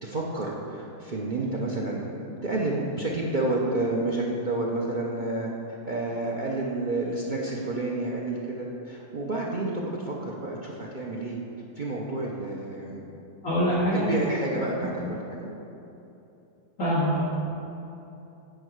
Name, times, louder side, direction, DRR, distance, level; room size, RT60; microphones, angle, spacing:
voice 1, 0.0-5.5 5.8-11.4 11.8-13.0 13.9-15.5, right 2 dB, 90° right, -3 dB, 0.4 m, -30 dB
voice 2, 13.4-14.0 14.8-14.9 16.8-17.2, equal, 50° left, -13 dB, 2.4 m, -24 dB
9.3 x 4.5 x 6.4 m, 2.9 s
omnidirectional pair, 2.0 m